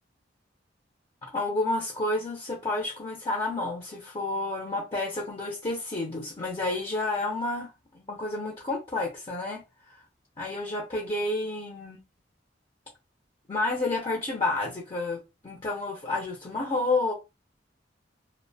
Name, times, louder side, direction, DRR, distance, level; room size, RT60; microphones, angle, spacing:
voice 1, 1.2-10.0 10.4-12.0 13.5-17.1, left 2 dB, 30° left, 0.6 m, -30 dB
2.4 x 2.1 x 2.6 m
head